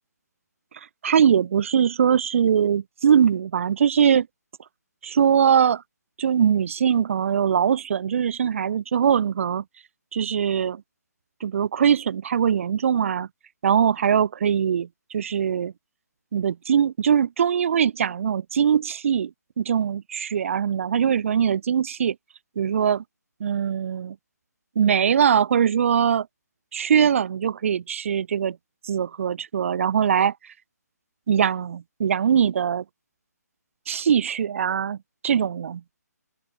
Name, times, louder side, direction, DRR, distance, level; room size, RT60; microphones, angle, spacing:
voice 1, 1.0-4.3 5.0-5.8 6.2-9.6 10.1-10.8 11.4-13.3 13.6-15.7 16.3-19.3 19.6-22.2 22.6-23.0 23.4-24.2 24.8-26.3 26.7-28.6 28.8-30.3 31.3-32.8 33.9-35.0 35.2-35.8, right 8 dB, 50° right, 2.5 m, -21 dB
open air
figure-of-eight pair, 150°, 9 cm